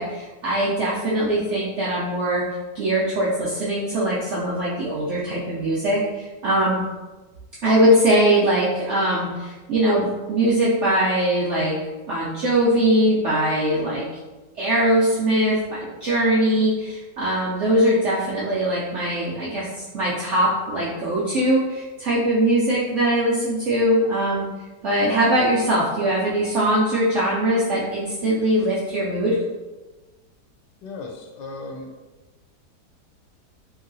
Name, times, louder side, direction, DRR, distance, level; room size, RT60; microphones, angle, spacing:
voice 1, 0.0-2.4 2.7-6.8 7.6-11.7 12.1-14.1 14.6-24.5 24.8-29.4, right 1 dB, 70° right, -7 dB, 0.7 m, -21 dB
voice 2, 30.8-31.9, left 3 dB, 80° left, 1 dB, 1.2 m, -36 dB
3.0 x 2.7 x 2.6 m, 1.2 s
omnidirectional pair, 1.8 m